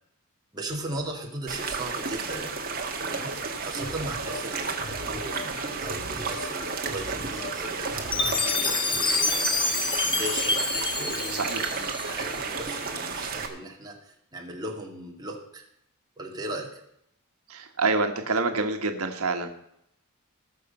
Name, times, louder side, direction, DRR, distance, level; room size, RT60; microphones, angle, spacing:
voice 1, 0.5-2.6 3.0-9.5 9.7-11.4 11.7-15.6 16.2-16.8, right 1 dB, 20° right, -1 dB, 2.4 m, -38 dB
sound 1, 1.5-13.5, right 4 dB, 45° right, 1.8 m, -32 dB
sound 2, 3.8-9.0, left 2 dB, 60° left, 2.3 m, -41 dB
Chime, 8.1-12.4, left 3 dB, 20° left, 1.2 m, -27 dB
voice 2, 11.3-11.7 17.5-19.5, right 3 dB, 85° right, 5 dB, 1.4 m, -27 dB
19.5 x 6.6 x 5.4 m, 0.76 s
head